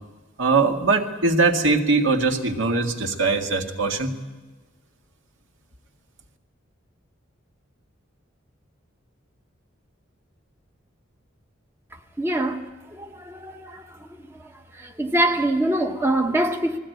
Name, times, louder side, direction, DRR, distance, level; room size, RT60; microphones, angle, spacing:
voice 1, 0.4-4.2, right 3 dB, 70° right, 2.0 m, -21 dB
voice 2, 12.2-12.7 12.9-13.8 14.7-16.8, right 1 dB, 10° right, 0.9 m, -24 dB
21.0 x 15.5 x 9.4 m
head